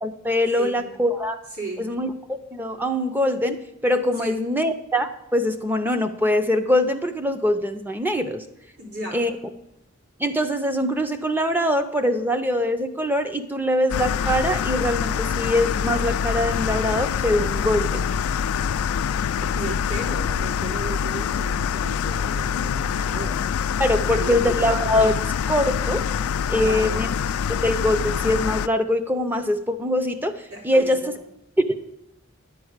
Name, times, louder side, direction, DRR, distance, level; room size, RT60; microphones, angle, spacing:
voice 1, 0.0-1.4 1.8-8.4 9.1-9.3 10.2-18.1 23.8-26.1 26.5-27.1 27.6-31.1 31.6-31.7, left 1 dB, 10° right, 8 dB, 0.6 m, -23 dB
voice 2, 1.5-1.9 4.2-4.4 8.8-9.2 19.4-23.4 24.0-24.5 26.6-27.1 30.5-31.1, right 2 dB, 75° right, -3 dB, 3.7 m, -35 dB
sound 1, 13.9-28.7, left 7 dB, 80° left, 0.3 m, -25 dB
11.0 x 4.7 x 8.0 m, 0.83 s
head